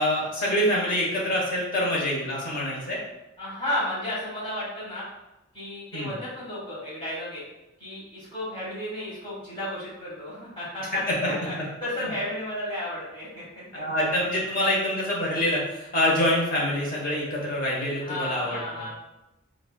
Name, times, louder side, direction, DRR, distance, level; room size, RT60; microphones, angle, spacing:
voice 1, 0.0-3.0 5.9-6.1 12.0-12.1 13.7-18.9, left 1 dB, 45° left, -4 dB, 1.0 m, -26 dB
voice 2, 3.4-5.0 5.5-7.4 7.8-11.5 11.8-13.8 18.0-18.9, left 1 dB, 25° left, -8 dB, 1.4 m, -33 dB
4.0 x 2.4 x 2.2 m, 0.95 s
head